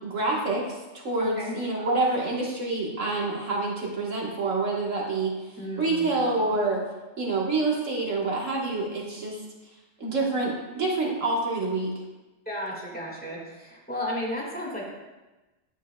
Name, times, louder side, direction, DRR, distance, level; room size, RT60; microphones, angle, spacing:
voice 1, 0.0-5.4 5.8-6.8 7.2-9.4 10.0-11.9, right 3 dB, 85° right, -3 dB, 1.9 m, -27 dB
voice 2, 1.2-1.5 5.6-6.1 12.5-14.9, equal, 5° left, -5 dB, 1.9 m, -33 dB
10.5 x 6.8 x 2.3 m, 1.1 s
omnidirectional pair, 1.3 m